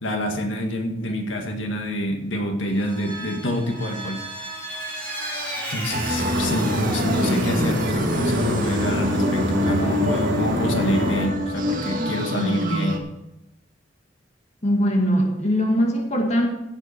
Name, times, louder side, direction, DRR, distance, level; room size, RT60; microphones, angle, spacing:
voice 1, 0.0-4.2 5.7-13.1, equal, 85° left, 3 dB, 2.0 m, -27 dB
Vehicle, 2.7-9.0, right 1 dB, 10° left, 4.9 m, -35 dB
sound 1, 5.9-13.0, equal, 45° right, 2.1 m, -26 dB
sound 2, 6.2-11.3, equal, 60° right, 4.7 m, -26 dB
voice 2, 14.6-16.5, equal, 35° left, 1 dB, 1.9 m, -21 dB
16.5 x 8.0 x 4.6 m, 0.87 s
head